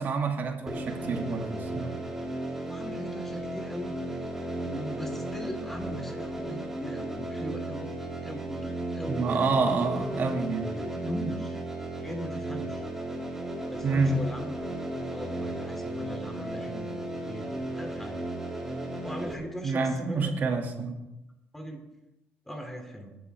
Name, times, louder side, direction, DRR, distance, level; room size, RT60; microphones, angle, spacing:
voice 1, 0.0-2.0 9.1-10.7 13.8-14.2 19.6-21.0, right 4 dB, 50° right, 2 dB, 2.3 m, -28 dB
sound 1, 0.7-19.3, right 1 dB, 10° right, 2.7 m, -35 dB
voice 2, 2.6-4.0 4.6-8.0 8.2-9.6 10.8-11.6 12.0-12.8 13.7-14.6 15.0-18.2 19.0-20.3 21.5-21.8 22.5-23.2, equal, 5° left, 3 dB, 2.8 m, -39 dB
21.5 x 11.0 x 3.5 m, 0.92 s
cardioid pair, 130°, 4 cm